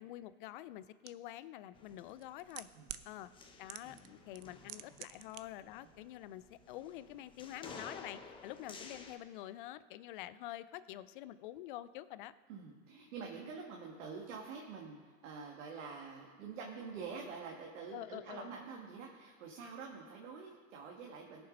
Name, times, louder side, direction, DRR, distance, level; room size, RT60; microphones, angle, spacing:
voice 1, 0.0-2.7 3.0-3.3 3.6-12.3 17.9-18.6, left 14 dB, 40° left, 16 dB, 0.4 m, -47 dB
sound 1, 1.1-1.2 2.1-3.1 3.7-4.1 4.3-5.4 5.7-5.8, right 14 dB, 45° right, 0.6 m, -46 dB
sound 2, 1.7-9.2, left 4 dB, 10° left, 0.8 m, -54 dB
voice 2, 12.5-21.5, right 5 dB, 60° right, 0 dB, 1.9 m, -47 dB
17.5 x 6.9 x 5.3 m, 1.5 s
hypercardioid pair, 140°, 42 cm